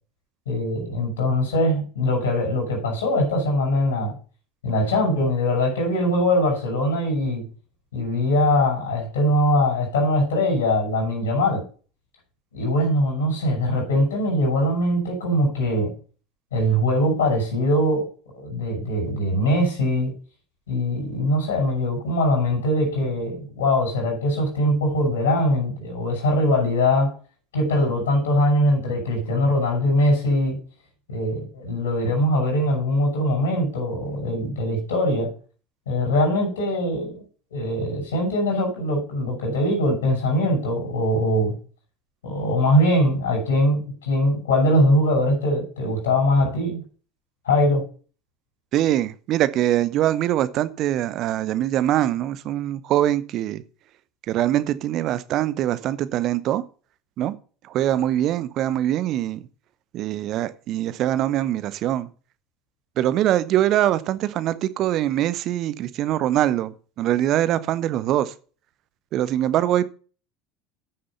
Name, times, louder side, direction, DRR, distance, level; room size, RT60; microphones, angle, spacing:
voice 1, 0.5-4.2 4.6-7.4 7.9-11.6 12.5-15.9 16.5-20.1 20.7-27.1 27.5-30.6 31.1-35.3 35.9-37.2 37.5-41.6 42.2-46.8 47.4-47.8, left 1 dB, 70° left, 5.9 m, -22 dB
voice 2, 48.7-53.6 54.3-56.6 57.2-57.3 57.7-59.4 59.9-62.1 63.0-68.3 69.1-69.8, right 12 dB, 45° right, 0.8 m, -23 dB
9.0 x 6.7 x 5.6 m
figure-of-eight pair, 70°, 0 cm